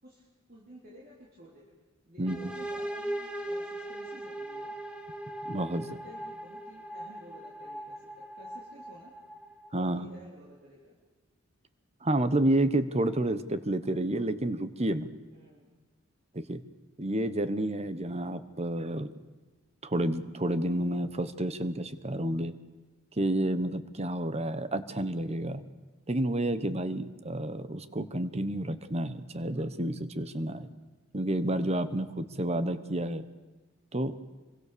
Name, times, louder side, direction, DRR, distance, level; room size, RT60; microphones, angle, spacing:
voice 1, 0.0-1.7 2.1-4.8 5.7-9.1 9.7-11.0 15.3-15.8 30.5-30.6, equal, 45° right, -4 dB, 3.8 m, -53 dB
voice 2, 2.2-2.5 5.5-5.9 9.7-10.1 12.0-15.1 16.3-16.6 17.0-19.1 19.8-22.5 23.2-25.6 26.1-30.7 31.1-33.2 33.9-34.1, right 1 dB, 30° right, 12 dB, 1.2 m, -30 dB
sound 1, 2.3-9.9, right 1 dB, 5° right, 2.0 m, -39 dB
26.5 x 23.5 x 6.9 m, 1.2 s
head